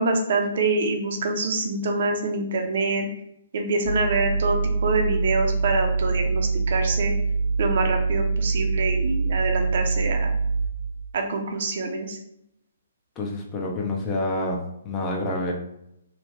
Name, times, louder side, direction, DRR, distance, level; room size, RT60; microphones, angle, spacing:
voice 1, 0.0-3.1 3.5-7.1 7.6-10.3 11.1-12.2, right 3 dB, 55° right, 3 dB, 0.5 m, -25 dB
sound 1, 3.9-10.7, right 4 dB, 65° left, 0.6 m, -24 dB
voice 2, 13.2-15.5, left 1 dB, 20° left, 0 dB, 0.6 m, -28 dB
2.8 x 2.1 x 3.0 m, 0.77 s
figure-of-eight pair, 130°, 0 cm